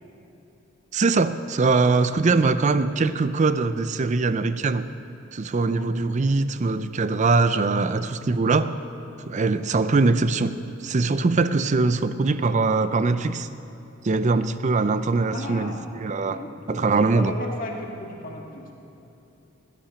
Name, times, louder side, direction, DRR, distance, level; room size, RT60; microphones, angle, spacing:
voice 1, 0.9-4.9 5.3-8.8 9.3-10.6 10.8-13.5 14.0-17.3, right 3 dB, 35° right, 12 dB, 0.4 m, -22 dB
voice 2, 5.7-6.1 15.3-18.8, left 1 dB, 40° left, -1 dB, 1.8 m, -36 dB
16.5 x 10.5 x 5.8 m, 3.0 s
head